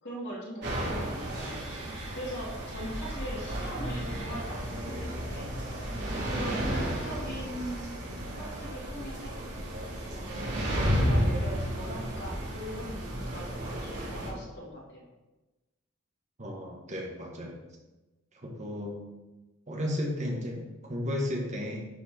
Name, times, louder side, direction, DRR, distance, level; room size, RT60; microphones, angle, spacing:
voice 1, 0.0-1.6 2.1-5.5 6.3-8.0 8.4-9.4 10.1-15.1, equal, 60° left, -5 dB, 3.0 m, -41 dB
sound 1, 0.6-14.3, equal, 60° right, 3.2 m, -32 dB
voice 2, 16.4-17.5 18.4-19.0 19.7-21.9, left 1 dB, 35° right, -1 dB, 1.6 m, -34 dB
11.0 x 4.7 x 4.4 m, 1.1 s
head